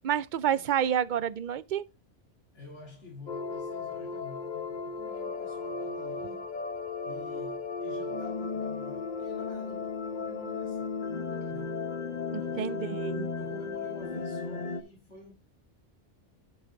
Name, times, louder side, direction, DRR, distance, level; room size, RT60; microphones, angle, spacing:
voice 1, 0.0-1.8 12.3-13.3, right 9 dB, 55° right, 0.6 m, -29 dB
voice 2, 2.5-6.5 7.0-11.0 11.5-11.9 12.4-15.3, left 3 dB, 85° left, 2.4 m, -50 dB
sound 1, 3.3-14.8, left 4 dB, 40° left, 1.0 m, -35 dB
11.0 x 5.0 x 3.8 m
omnidirectional pair, 1.2 m